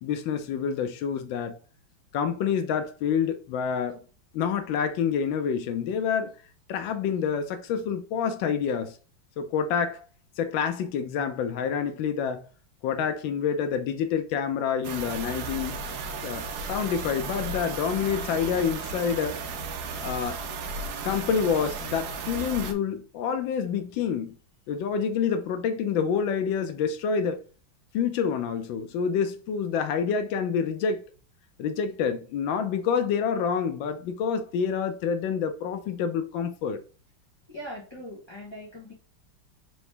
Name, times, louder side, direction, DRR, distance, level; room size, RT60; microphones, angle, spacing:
voice 1, 0.0-1.6 2.1-4.0 4.3-6.3 6.7-9.0 9.4-10.0 10.4-12.4 12.8-15.8 16.2-19.4 20.0-20.4 21.0-24.4 24.7-27.4 27.9-31.0 31.6-36.8, left 7 dB, 75° left, 1.3 m, -27 dB
sound 1, 14.8-22.7, right 4 dB, 65° right, 1.0 m, -35 dB
voice 2, 37.5-38.9, equal, 20° left, 1.0 m, -40 dB
3.9 x 3.0 x 3.2 m
omnidirectional pair, 2.2 m